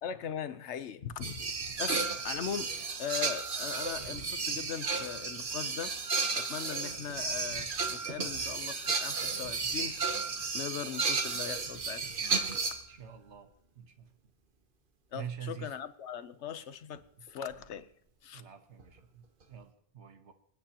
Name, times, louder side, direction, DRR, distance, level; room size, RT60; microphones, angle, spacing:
voice 1, 0.0-1.4 1.7-2.7 3.0-5.9 6.3-9.9 10.5-12.0 15.1-17.0 17.3-17.9 18.2-18.4, left 8 dB, 80° left, 13 dB, 1.1 m, -39 dB
sound 1, 1.2-12.8 17.0-17.1 17.5-17.6 18.8-18.9, right 4 dB, 50° right, 1.2 m, -33 dB
voice 2, 12.9-13.5 13.8-14.1 15.1-15.7 18.3-20.3, right 8 dB, 85° right, 8 dB, 1.4 m, -45 dB
25.0 x 9.3 x 2.9 m, 0.70 s
omnidirectional pair, 1.1 m